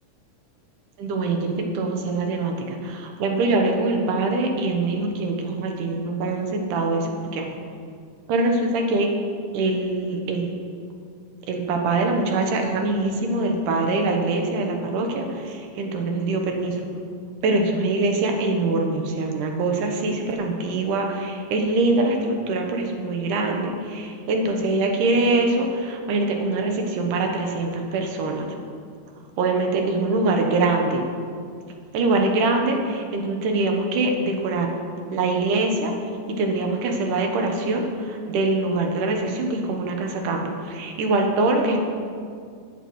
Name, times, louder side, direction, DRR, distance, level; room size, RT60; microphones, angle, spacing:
voice 1, 1.0-2.5 2.8-7.6 8.3-9.1 9.5-10.5 11.5-16.8 17.4-28.5 29.4-31.0 31.9-34.7 35.1-35.9 36.4-41.8, right 2 dB, 85° right, 2 dB, 2.6 m, -23 dB
15.5 x 8.9 x 3.1 m, 2.3 s
omnidirectional pair, 3.6 m